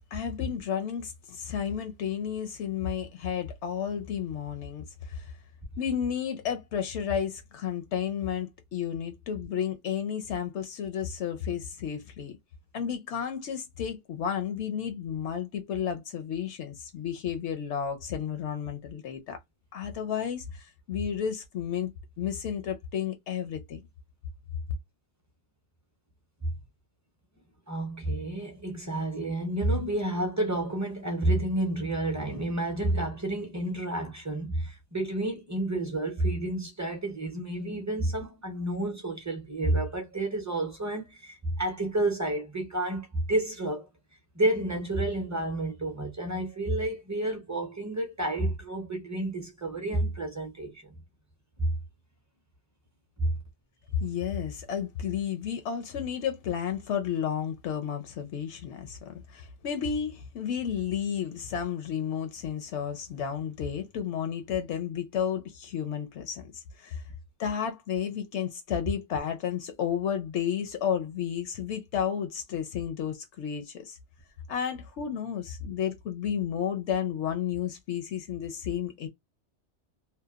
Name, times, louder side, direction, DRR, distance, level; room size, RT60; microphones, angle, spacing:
voice 1, 0.1-5.3 5.8-12.4 12.7-19.4 19.7-21.9 22.2-23.8 54.0-67.0 67.4-74.0 74.5-79.1, left 8 dB, 75° left, 0.8 m, -32 dB
voice 2, 27.7-43.9 44.3-50.9 51.6-51.8 53.2-53.4, right 1 dB, 20° right, 0.5 m, -30 dB
2.8 x 2.1 x 2.3 m
omnidirectional pair, 1.2 m